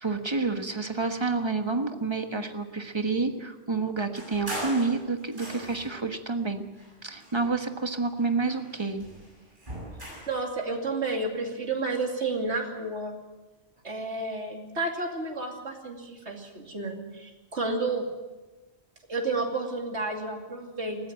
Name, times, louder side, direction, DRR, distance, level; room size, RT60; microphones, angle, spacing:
voice 1, 0.0-6.6 7.0-9.1, right 3 dB, 25° right, 7 dB, 1.4 m, -29 dB
sound 1, 4.1-6.0 6.7-7.9 8.2-10.4, right 1 dB, 50° right, 7.3 m, -40 dB
voice 2, 10.3-13.2 13.8-18.1 19.1-21.1, right 3 dB, 85° right, 2 dB, 3.0 m, -31 dB
20.0 x 14.5 x 8.9 m, 1.2 s
omnidirectional pair, 1.1 m